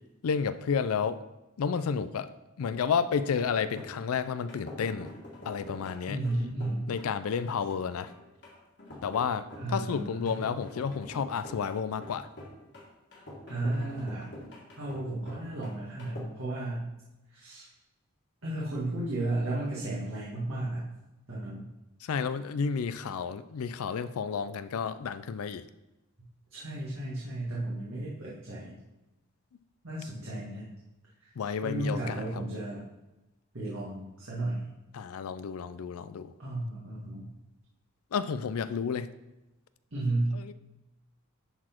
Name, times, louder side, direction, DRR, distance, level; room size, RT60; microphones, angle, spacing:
voice 1, 0.2-1.2 1.6-2.3 2.6-5.1 5.5-6.2 6.9-8.1 9.0-12.3 22.0-25.6 31.4-32.2 34.9-36.3 38.1-39.1 40.3-40.5, left 6 dB, 80° left, 13 dB, 0.4 m, -31 dB
sound 1, 3.2-16.2, left 1 dB, 50° left, 2.0 m, -46 dB
voice 2, 6.1-6.9 9.6-10.4 13.5-14.3 14.8-16.9 17.3-17.7 18.4-20.9 21.3-21.7 26.5-28.8 29.8-30.7 31.2-31.3 31.6-32.8 33.5-34.7 36.4-37.3 39.9-40.3, right 1 dB, 65° right, -7 dB, 1.9 m, -33 dB
11.0 x 4.1 x 4.4 m, 0.99 s
head